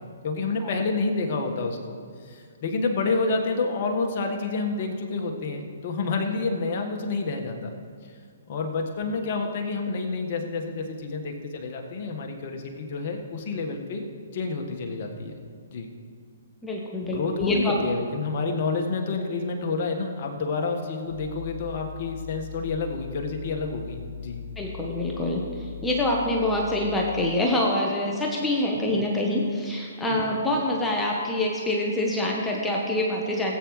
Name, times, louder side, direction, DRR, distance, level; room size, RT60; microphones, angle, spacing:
voice 1, 0.2-2.0 2.2-7.7 8.0-8.1 8.5-14.0 14.3-15.4 15.7-15.9 17.1-24.4 28.7-28.8 30.1-30.2, left 3 dB, 45° left, 2 dB, 1.5 m, -29 dB
voice 2, 16.6-17.8 24.6-33.6, left 1 dB, 10° left, -2 dB, 1.2 m, -26 dB
sound 1, 21.1-27.3, left 7 dB, 70° right, 1.5 m, -39 dB
18.0 x 8.6 x 3.3 m, 2.1 s
figure-of-eight pair, 130°, 0 cm